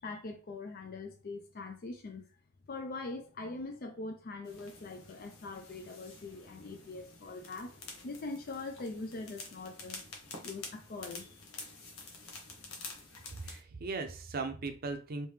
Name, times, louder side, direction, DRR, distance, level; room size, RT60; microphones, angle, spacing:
voice 1, 0.0-2.2 2.7-7.7 8.0-10.0 10.4-11.4, left 3 dB, 45° left, 0.4 m, -42 dB
sound 1, 4.4-13.6, left 3 dB, 85° left, 1.0 m, -49 dB
voice 2, 13.4-15.3, right 3 dB, 45° right, 0.5 m, -38 dB
3.4 x 2.7 x 3.2 m
head